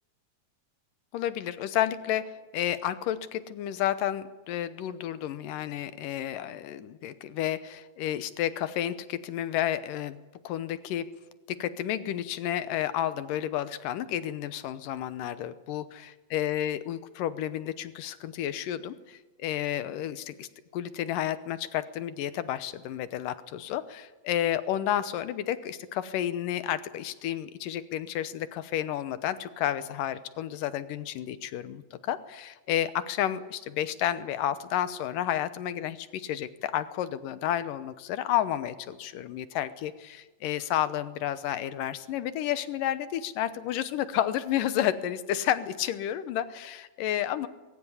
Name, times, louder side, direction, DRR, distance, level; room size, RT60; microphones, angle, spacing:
voice 1, 1.1-10.2 10.4-11.1 11.5-15.8 16.3-20.5 20.7-47.5, left 11 dB, 75° left, 13 dB, 2.4 m, -31 dB
21.0 x 17.5 x 9.8 m, 1.2 s
omnidirectional pair, 4.2 m